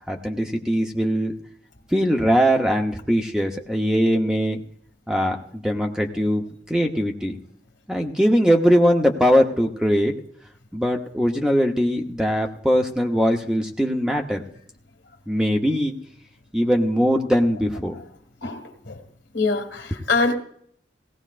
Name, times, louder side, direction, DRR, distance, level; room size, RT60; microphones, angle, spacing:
voice 1, 0.1-1.3 1.9-4.6 5.1-7.4 7.9-10.1 10.7-14.4 15.3-15.9 16.5-17.9, equal, 5° right, 2 dB, 0.8 m, -21 dB
voice 2, 18.4-19.0 19.3-20.3, left 3 dB, 80° left, 4 dB, 1.8 m, -24 dB
18.5 x 16.0 x 2.5 m, 0.66 s
head